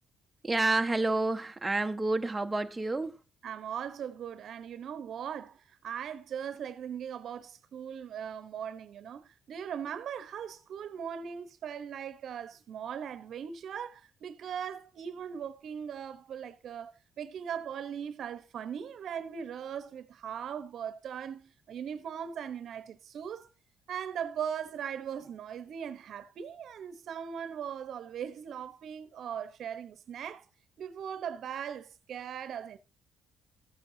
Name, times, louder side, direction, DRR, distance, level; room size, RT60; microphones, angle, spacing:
voice 1, 0.4-3.2, right 2 dB, 15° right, 0.8 m, -29 dB
voice 2, 3.4-16.9 17.2-23.5 23.9-30.4 30.8-32.8, right 8 dB, 65° right, 0.9 m, -39 dB
14.0 x 8.7 x 2.7 m
cardioid pair, 90°, 0 cm